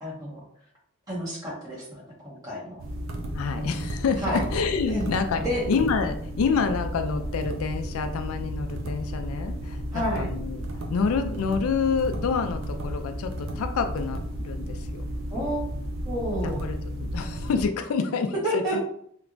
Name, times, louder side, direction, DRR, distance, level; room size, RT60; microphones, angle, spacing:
voice 1, 0.0-0.4 1.1-2.8 3.6-3.7 4.2-4.4 4.9-5.1 5.4-5.7 9.9-10.3 15.3-15.7 16.0-16.6 18.4-18.8, equal, 15° right, -7 dB, 1.2 m, -30 dB
sound 1, 2.8-17.7, equal, 70° right, 0.5 m, -33 dB
voice 2, 3.3-15.0 16.4-18.8, left 5 dB, 85° left, 7 dB, 0.4 m, -28 dB
3.3 x 2.9 x 2.5 m, 0.65 s
head